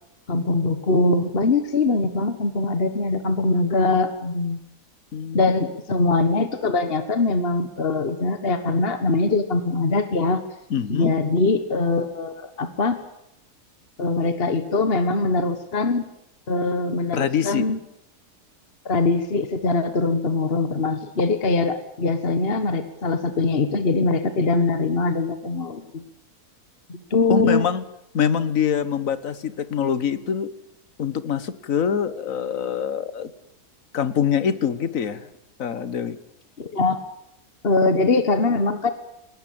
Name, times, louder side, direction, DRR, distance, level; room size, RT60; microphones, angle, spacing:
voice 1, 0.3-4.6 5.3-10.4 10.9-13.0 14.0-16.0 16.5-17.8 18.8-26.0 26.9-27.7 36.6-37.0 37.6-38.9, left 3 dB, 40° left, 9 dB, 1.6 m, -22 dB
voice 2, 5.1-5.5 10.7-11.1 17.1-17.6 27.3-27.8 28.1-30.5 31.0-33.3 33.9-35.3 35.6-36.2, left 7 dB, 55° left, 14 dB, 1.7 m, -24 dB
21.0 x 19.5 x 8.8 m, 0.83 s
omnidirectional pair, 1.7 m